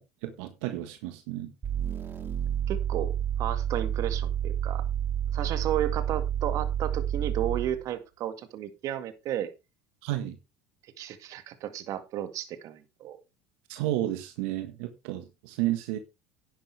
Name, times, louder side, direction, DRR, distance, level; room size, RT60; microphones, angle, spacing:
voice 1, 0.0-1.5 10.0-10.3 13.7-16.0, right 14 dB, 75° right, 1.6 m, -32 dB
sound 1, 1.6-7.8, right 10 dB, 35° right, 2.5 m, -29 dB
voice 2, 2.7-4.9 5.3-9.5 10.8-13.2, right 11 dB, 55° right, 2.1 m, -33 dB
11.0 x 10.5 x 3.5 m
supercardioid pair, 100°, 7 cm